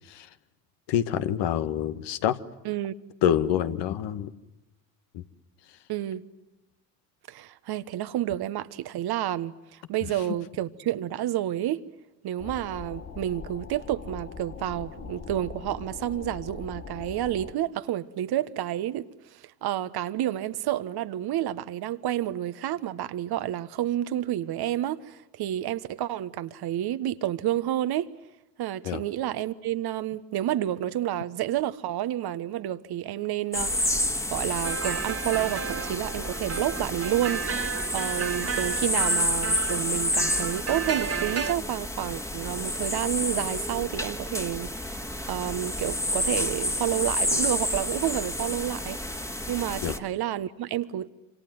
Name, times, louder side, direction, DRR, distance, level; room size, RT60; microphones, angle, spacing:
voice 1, 0.9-2.4 3.2-4.3 5.1-5.2 28.8-29.0 49.8-50.0, left 10 dB, 55° left, 1.7 m, -26 dB
voice 2, 2.6-3.0 5.9-6.2 7.3-11.9 12.2-28.1 28.6-34.0 34.3-37.4 37.9-49.0 49.5-51.1, right 12 dB, 50° right, 1.5 m, -30 dB
sound 1, 12.4-17.5, left 5 dB, 35° left, 3.0 m, -41 dB
sound 2, 33.5-50.0, left 1 dB, 5° left, 2.1 m, -30 dB
sound 3, 34.6-41.5, right 6 dB, 30° right, 2.0 m, -33 dB
27.0 x 27.0 x 7.7 m
hypercardioid pair, 65°, 48 cm